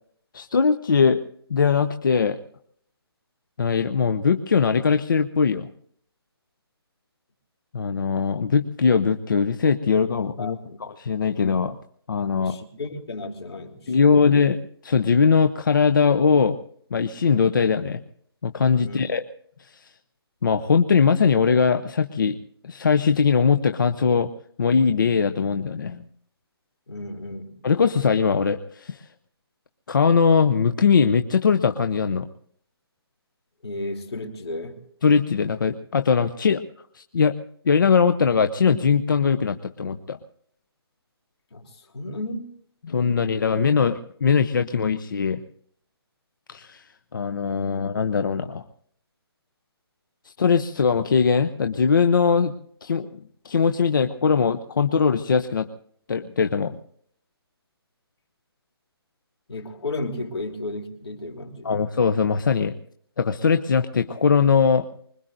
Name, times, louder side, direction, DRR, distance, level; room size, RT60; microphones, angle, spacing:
voice 1, 0.3-1.2 1.5-2.4 3.6-5.7 7.7-11.8 12.1-12.6 13.9-14.6 14.8-16.6 16.9-18.0 18.4-19.2 19.6-19.9 20.4-22.4 22.6-24.3 24.6-26.1 27.6-29.1 29.9-32.3 35.0-36.6 36.9-37.4 37.6-40.2 42.8-45.4 46.5-46.8 47.1-48.6 50.2-52.5 52.8-55.7 56.1-56.8 61.6-62.7 63.2-64.9, left 5 dB, 50° left, 9 dB, 0.7 m, -21 dB
voice 2, 10.4-10.8 12.4-14.4 18.8-19.0 26.9-27.5 33.6-34.8 41.5-42.6 59.5-61.8, left 2 dB, 75° left, 3 dB, 3.2 m, -33 dB
25.0 x 21.5 x 2.6 m, 0.65 s
hypercardioid pair, 175°, 13 cm